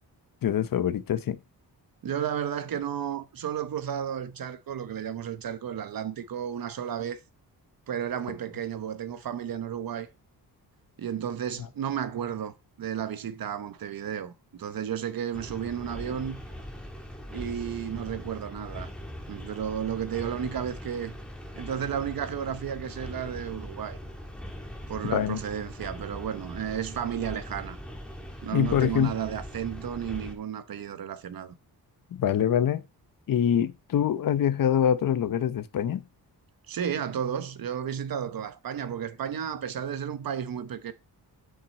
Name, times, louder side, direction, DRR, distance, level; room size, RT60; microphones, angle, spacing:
voice 1, 0.4-1.4 25.0-25.4 28.5-29.1 32.1-32.8 33.3-36.0, left 9 dB, 60° left, 0.8 m, -25 dB
voice 2, 2.0-7.2 7.9-10.1 11.0-16.4 17.3-18.9 19.3-21.2 21.6-24.0 24.9-27.8 28.4-31.5 36.7-40.9, right 9 dB, 60° right, 1.0 m, -33 dB
sound 1, 15.3-30.3, equal, ahead, 1.9 m, -41 dB
7.5 x 6.0 x 4.1 m
wide cardioid pair, 120°, 39 cm